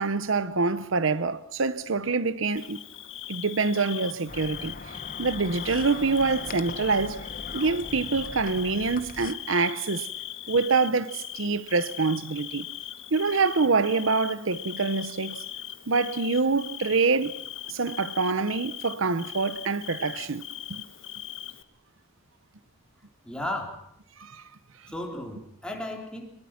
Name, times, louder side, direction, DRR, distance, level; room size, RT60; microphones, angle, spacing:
voice 1, 0.0-2.8 3.3-7.3 7.5-10.1 10.5-12.7 13.1-15.4 15.9-17.3 17.7-20.4 20.7-20.8 24.2-24.4, right 4 dB, 70° right, 0.8 m, -26 dB
Bird / Cricket, 2.6-21.6, left 11 dB, 65° left, 1.4 m, -40 dB
sound 1, 4.3-9.3, left 3 dB, 40° left, 1.0 m, -40 dB
voice 2, 23.2-23.9 24.9-26.3, left 1 dB, 5° left, 3.7 m, -34 dB
23.0 x 21.5 x 5.9 m
head